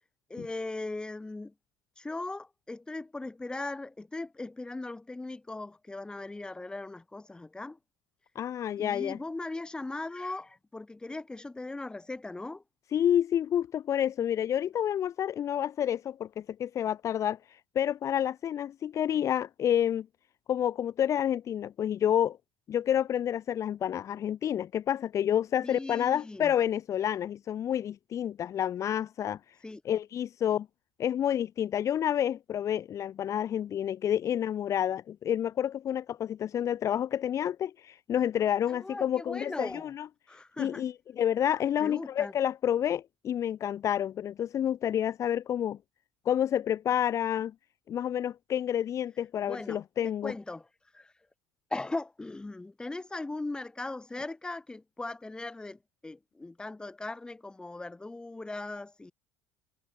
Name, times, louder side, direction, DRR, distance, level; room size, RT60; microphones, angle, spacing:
voice 1, 0.3-1.5 2.0-7.8 8.8-12.6 25.6-26.5 29.6-29.8 38.7-39.9 40.3-40.9 41.8-42.3 49.4-50.7 50.9-51.1 51.7-59.1, left 2 dB, 10° left, 5.2 m, -39 dB
voice 2, 8.3-9.2 12.9-17.4 17.7-20.1 20.5-22.4 22.7-29.4 29.8-30.7 31.0-40.1 40.6-45.8 46.2-47.5 47.9-50.3, left 10 dB, 40° left, 2.6 m, -29 dB
supercardioid pair, 115°, 8 cm